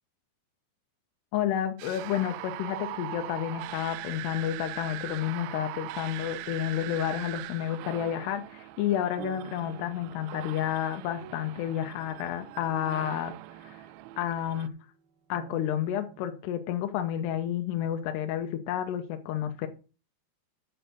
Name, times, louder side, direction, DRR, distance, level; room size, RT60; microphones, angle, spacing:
voice 1, 1.3-13.3 13.6-13.8 14.2-14.7 15.3-19.7, left 11 dB, 80° left, 6 dB, 2.7 m, -30 dB
sound 1, 1.8-14.7, right 16 dB, 90° right, 3.0 m, -41 dB
sound 2, 8.7-14.7 15.3-16.5, right 10 dB, 70° right, 2.7 m, -48 dB
9.0 x 6.0 x 6.8 m, 0.34 s
omnidirectional pair, 5.3 m